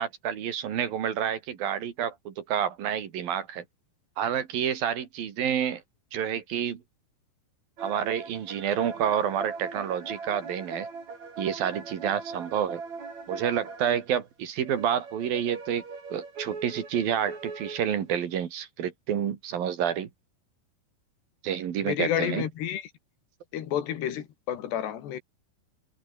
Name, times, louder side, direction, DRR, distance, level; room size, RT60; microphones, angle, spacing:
voice 1, 0.0-3.6 4.2-5.8 6.1-6.8 7.8-10.9 11.4-12.8 13.3-15.8 16.1-20.1 21.4-22.5, right 9 dB, 65° right, 3.8 m, -29 dB
sound 1, 7.8-14.1 14.6-18.2, right 4 dB, 45° right, 6.4 m, -40 dB
voice 2, 21.8-22.8 23.5-25.2, left 10 dB, 90° left, 4.4 m, -30 dB
omnidirectional pair, 4.7 m